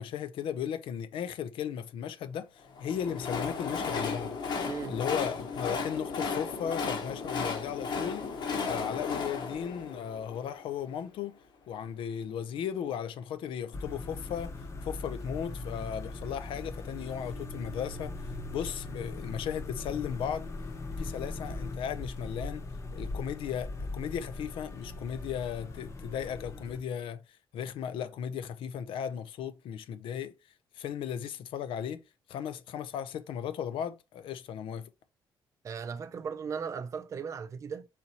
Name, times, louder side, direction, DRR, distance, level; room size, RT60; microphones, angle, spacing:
voice 1, 0.0-4.4 4.9-8.3 8.6-11.4 11.7-14.5 14.8-18.1 18.5-20.4 21.0-22.7 22.9-27.2 27.5-30.3 30.7-32.0 32.3-34.9, left 8 dB, 80° left, 0.5 m, -36 dB
Train, 2.7-10.9, left 5 dB, 60° left, 1.1 m, -35 dB
voice 2, 4.7-5.0 35.6-37.9, right 6 dB, 35° right, 0.4 m, -37 dB
sound 1, 13.7-26.8, left 2 dB, 35° left, 0.9 m, -40 dB
4.2 x 4.0 x 2.9 m
cardioid pair, 140°, 9 cm